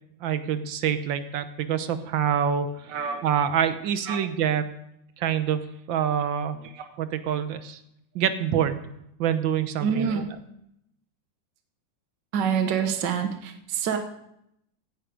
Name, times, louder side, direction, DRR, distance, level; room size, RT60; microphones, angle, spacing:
voice 1, 0.2-3.0 3.2-4.7 5.2-6.6 7.0-7.8 8.2-8.8 9.2-10.2, right 8 dB, 90° right, 11 dB, 1.7 m, -26 dB
voice 2, 9.8-10.3 12.3-14.0, right 7 dB, 70° right, 5 dB, 1.7 m, -26 dB
16.5 x 9.5 x 5.0 m, 0.78 s
omnidirectional pair, 2.0 m